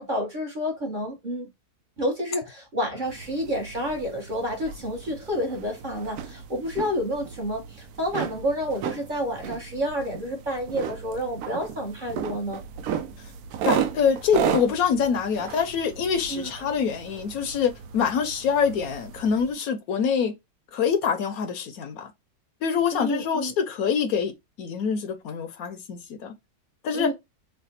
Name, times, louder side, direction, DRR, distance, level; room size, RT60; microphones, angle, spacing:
voice 1, 0.0-1.5 2.0-12.6 16.3-16.5 22.9-23.5 26.9-27.1, equal, 40° right, 0.9 m, -29 dB
sound 1, 3.0-19.5, right 8 dB, 75° right, 1.0 m, -34 dB
voice 2, 13.6-20.3 20.7-22.1 22.6-24.3 24.6-26.3 26.8-27.1, left 6 dB, 70° left, 1.0 m, -25 dB
3.3 x 2.1 x 4.0 m
omnidirectional pair, 1.6 m